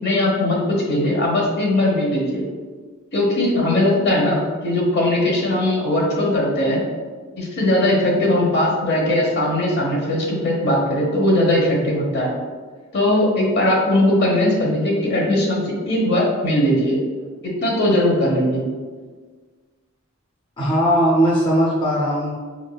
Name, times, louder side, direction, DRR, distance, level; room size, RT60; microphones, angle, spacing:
voice 1, 0.0-2.4 3.1-6.8 7.4-12.3 12.9-17.0 17.4-18.6, left 1 dB, 55° left, -2 dB, 1.0 m, -19 dB
voice 2, 20.6-22.3, equal, 25° left, -6 dB, 0.6 m, -18 dB
4.8 x 3.6 x 2.3 m, 1.5 s
head